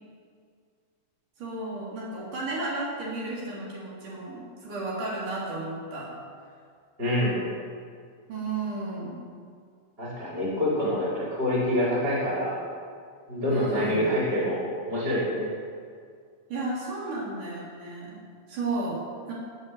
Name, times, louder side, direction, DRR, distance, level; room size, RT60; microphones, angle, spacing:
voice 1, 1.4-6.1 8.3-9.2 13.5-14.1 16.5-19.3, right 2 dB, 90° right, -5 dB, 4.9 m, -33 dB
voice 2, 7.0-7.4 10.0-12.6 13.3-14.6 14.9-15.5, left 1 dB, 30° right, -6 dB, 5.8 m, -26 dB
19.0 x 8.4 x 8.0 m, 2.2 s
omnidirectional pair, 3.5 m